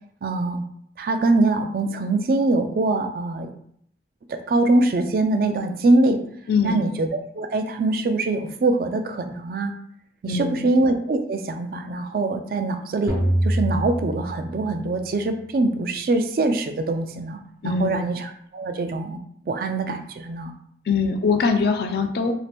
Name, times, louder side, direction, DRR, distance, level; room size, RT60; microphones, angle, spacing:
voice 1, 0.2-0.6 1.0-3.5 4.5-6.2 6.6-9.7 10.2-13.1 13.4-19.2 19.5-20.5, right 2 dB, 55° right, 6 dB, 0.3 m, -23 dB
voice 2, 6.5-6.9 10.3-10.7 17.6-18.1 20.9-22.3, left 5 dB, 60° left, 5 dB, 0.4 m, -22 dB
sound 1, 13.1-15.0, right 1 dB, 85° right, 1.0 m, -25 dB
2.7 x 2.5 x 3.4 m, 0.67 s
head